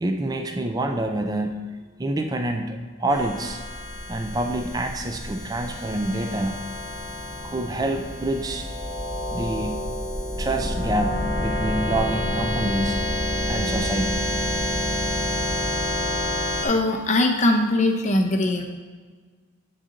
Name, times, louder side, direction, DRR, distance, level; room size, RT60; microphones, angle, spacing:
voice 1, 0.0-1.7 2.0-3.6 4.1-6.6 7.4-8.7 9.3-9.8 10.4-13.0 13.5-14.3, right 1 dB, 20° right, 5 dB, 0.4 m, -27 dB
sound 1, 3.1-16.7, left 1 dB, 5° left, 1.1 m, -28 dB
voice 2, 16.1-18.6, left 2 dB, 35° left, 2 dB, 0.6 m, -22 dB
7.8 x 3.9 x 3.7 m, 1.5 s
head